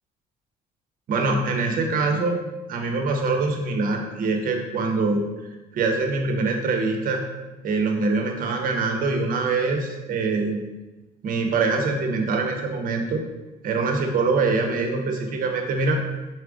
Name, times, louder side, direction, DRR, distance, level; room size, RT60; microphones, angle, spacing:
voice 1, 1.1-2.4 2.7-5.2 5.7-7.2 7.6-10.6 11.2-13.2 13.6-16.0, right 3 dB, 55° right, 3 dB, 0.8 m, -24 dB
4.4 x 2.4 x 4.8 m, 1.1 s
cardioid pair, 110°, 17 cm